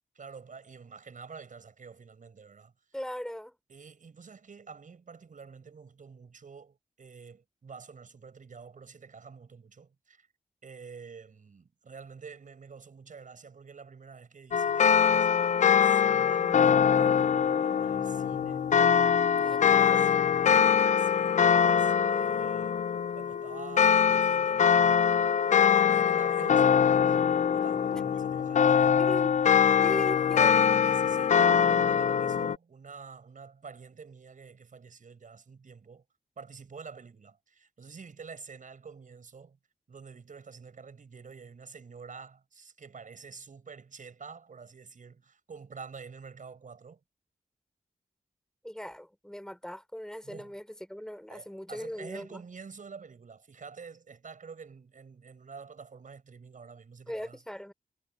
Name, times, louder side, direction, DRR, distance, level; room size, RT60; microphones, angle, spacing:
voice 1, 0.2-2.7 3.7-10.3 10.6-18.7 19.3-20.1 21.0-22.8 23.1-25.2 25.8-27.1 27.5-29.0 30.8-36.0 36.4-39.6 39.9-47.0 50.2-50.5 51.3-57.4, right 5 dB, 60° right, 7.0 m, -48 dB
voice 2, 2.9-3.5 19.4-20.6 27.9-28.0 29.0-29.3 29.8-30.7 48.6-52.4 57.1-57.7, equal, 5° left, 3.8 m, -39 dB
sound 1, 14.5-32.6, left 7 dB, 55° left, 0.4 m, -23 dB
cardioid pair, 80°, 15 cm